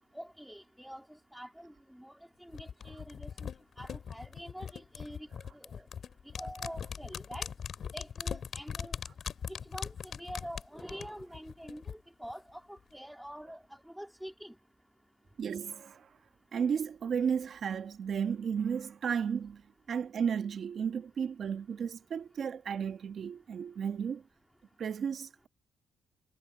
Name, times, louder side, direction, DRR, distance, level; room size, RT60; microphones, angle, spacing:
voice 1, 0.1-1.1 1.3-3.5 3.8-5.3 5.5-5.9 6.4-7.5 7.9-9.0 9.5-14.5, equal, ahead, 2.1 m, -46 dB
sound 1, 2.5-11.9 12.2-12.3, left 7 dB, 55° left, 2.7 m, -40 dB
voice 2, 15.4-16.1 16.5-19.6 19.9-24.2 24.8-25.5, right 7 dB, 55° right, 1.5 m, -33 dB
cardioid pair, 90°, 0 cm